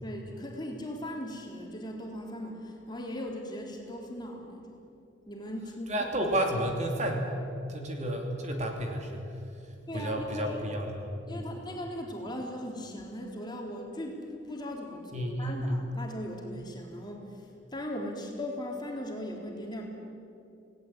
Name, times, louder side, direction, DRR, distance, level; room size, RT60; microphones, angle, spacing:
voice 1, 0.0-4.8 5.3-6.2 9.9-10.6 11.3-19.9, left 1 dB, 20° left, 0 dB, 3.7 m, -39 dB
voice 2, 5.9-7.4 7.7-9.2 9.9-11.0 11.3-11.4 15.1-15.8, right 1 dB, 35° right, 2 dB, 2.9 m, -31 dB
27.5 x 18.5 x 9.0 m, 2.7 s
head